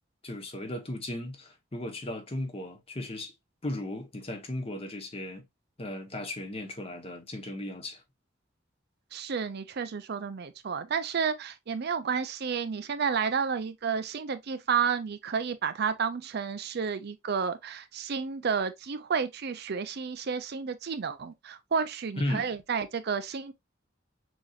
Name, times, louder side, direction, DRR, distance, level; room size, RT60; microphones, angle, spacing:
voice 1, 0.2-3.3 3.6-5.4 5.8-8.0 22.2-22.5, left 1 dB, 30° left, 1.1 m, -36 dB
voice 2, 9.1-23.5, right 6 dB, 55° right, 0.5 m, -31 dB
6.2 x 2.9 x 2.4 m
head